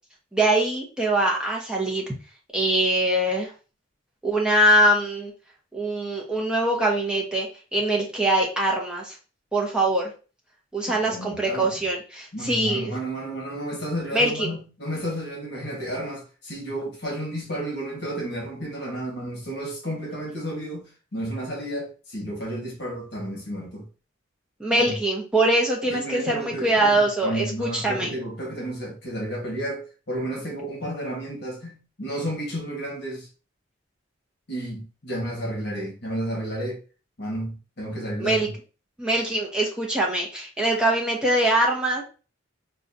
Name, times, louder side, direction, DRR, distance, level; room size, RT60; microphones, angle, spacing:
voice 1, 0.3-2.0 2.5-3.5 4.2-5.3 5.7-9.1 9.5-10.1 10.7-12.9 14.1-14.5 24.6-28.1 38.2-38.5 39.0-42.0, right 1 dB, 5° right, 0.8 m, -23 dB
voice 2, 10.9-11.7 12.3-23.9 24.7-25.0 25.9-33.3 34.5-36.8 37.2-38.5, right 1 dB, 55° left, 1.3 m, -32 dB
5.3 x 2.3 x 2.6 m
head